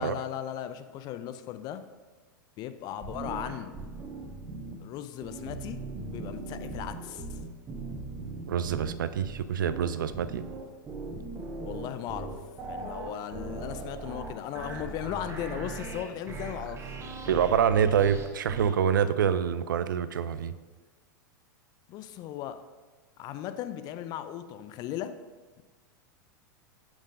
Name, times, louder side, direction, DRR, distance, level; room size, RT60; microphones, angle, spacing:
voice 1, 0.0-1.8 2.6-3.8 4.8-7.4 11.6-12.3 12.7-17.0 21.9-22.6 23.2-25.1 25.6-25.7, left 11 dB, 40° left, 10 dB, 0.5 m, -37 dB
sound 1, 3.0-4.7 5.2-18.7, right 3 dB, 25° right, 1.2 m, -39 dB
voice 2, 8.5-10.4 17.3-20.5, right 8 dB, 75° right, 13 dB, 0.4 m, -26 dB
5.8 x 4.5 x 5.0 m, 1.4 s
figure-of-eight pair, 95°, 11 cm